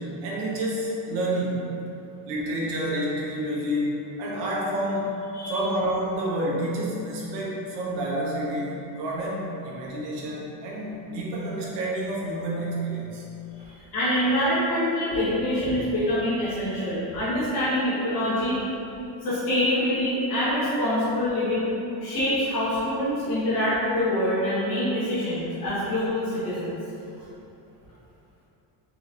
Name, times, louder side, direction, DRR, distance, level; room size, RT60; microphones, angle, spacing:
voice 1, 0.0-1.8 2.3-5.2 5.5-13.2 13.6-13.7, right 1 dB, 80° right, -4 dB, 1.1 m, -29 dB
voice 2, 13.7-18.6 19.2-21.7 22.0-26.8, left 1 dB, 50° left, -10 dB, 1.2 m, -25 dB
4.0 x 3.2 x 3.8 m, 2.9 s
cardioid pair, 125°, 41 cm